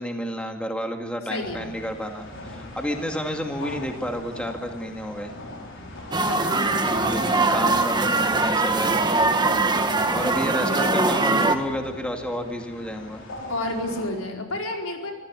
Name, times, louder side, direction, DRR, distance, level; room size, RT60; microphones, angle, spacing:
voice 1, 0.0-5.3 6.9-9.2 10.1-13.2, equal, 5° left, 3 dB, 2.1 m, -31 dB
voice 2, 1.3-1.6 6.2-6.7 10.6-11.0 13.5-15.1, left 1 dB, 85° left, 2 dB, 4.5 m, -30 dB
sound 1, 1.4-14.1, left 1 dB, 60° left, 5.6 m, -40 dB
sound 2, 6.1-11.6, right 3 dB, 20° right, 1.6 m, -22 dB
25.5 x 15.5 x 9.7 m, 1.2 s
head